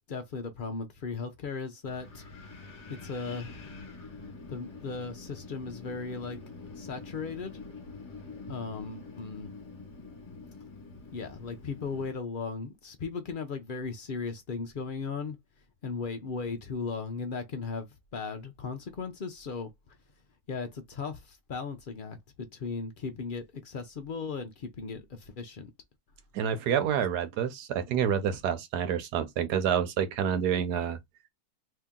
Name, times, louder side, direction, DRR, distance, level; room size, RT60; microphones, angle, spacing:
voice 1, 0.1-2.2 2.9-3.7 4.5-6.4 6.7-7.6 8.5-9.5 11.1-15.4 15.8-19.7 20.5-25.7, left 4 dB, 80° left, 0.4 m, -37 dB
Wind, 1.9-12.1, left 3 dB, 50° left, 1.2 m, -46 dB
voice 2, 26.3-31.0, right 8 dB, 85° right, 1.3 m, -28 dB
2.8 x 2.8 x 3.6 m
omnidirectional pair, 1.7 m